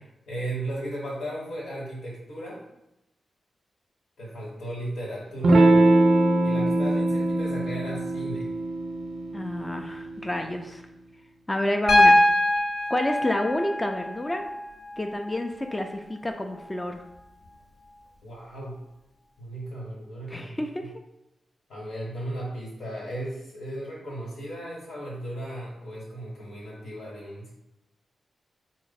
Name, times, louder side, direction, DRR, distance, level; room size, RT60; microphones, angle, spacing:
voice 1, 0.0-2.7 4.2-5.7 6.4-8.5 18.2-18.8 19.4-20.9 21.7-27.5, right 1 dB, 80° left, -5 dB, 1.2 m, -36 dB
Electric guitar / Strum, 5.4-10.5, right 2 dB, 70° right, 0.4 m, -22 dB
voice 2, 9.3-10.8 11.5-12.2 12.9-14.4 15.0-17.0 20.3-20.9, left 1 dB, 20° left, 4 dB, 0.4 m, -29 dB
Piano, 11.9-15.9 17.5-17.6, left 1 dB, 50° left, 0.7 m, -23 dB
4.4 x 2.0 x 4.0 m, 0.88 s
cardioid pair, 55°, 0 cm